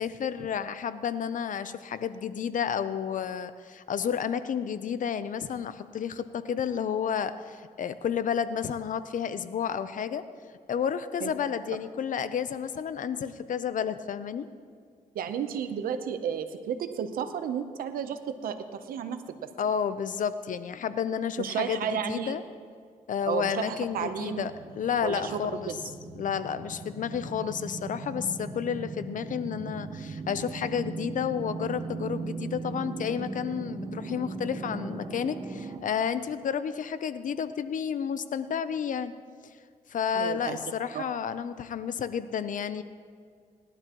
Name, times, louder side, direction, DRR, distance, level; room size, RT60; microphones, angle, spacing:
voice 1, 0.0-10.2 10.7-14.5 19.6-22.4 23.1-25.7 26.2-39.1 39.9-42.8, left 7 dB, 65° left, 12 dB, 0.7 m, -31 dB
voice 2, 15.1-19.2 21.4-22.4 23.3-24.5 25.0-25.8 40.1-40.6 40.9-41.0, right 7 dB, 90° right, 9 dB, 0.9 m, -32 dB
sound 1, 23.2-35.8, right 3 dB, 35° right, 1.4 m, -39 dB
20.0 x 12.0 x 3.1 m, 2.1 s
cardioid pair, 75°, 14 cm